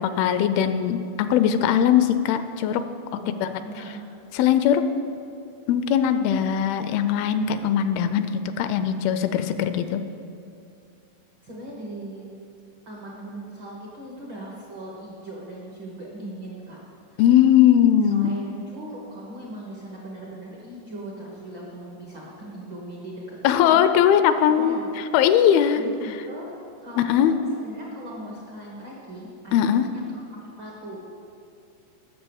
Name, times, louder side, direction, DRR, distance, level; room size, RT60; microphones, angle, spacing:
voice 1, 0.0-2.8 3.4-3.5 4.3-4.8 5.7-8.3 8.6-10.0 17.2-18.3 23.4-24.8 25.1-25.8 27.0-27.3 29.5-29.9, left 9 dB, 85° left, 10 dB, 2.3 m, -20 dB
voice 2, 3.1-4.1 11.4-12.3 12.8-16.8 17.1-17.2 18.1-23.8 24.4-24.9 25.7-26.5 26.8-30.0 30.6-31.0, right 1 dB, 75° right, -4 dB, 1.0 m, -39 dB
9.6 x 6.9 x 7.0 m, 2.5 s
omnidirectional pair, 4.4 m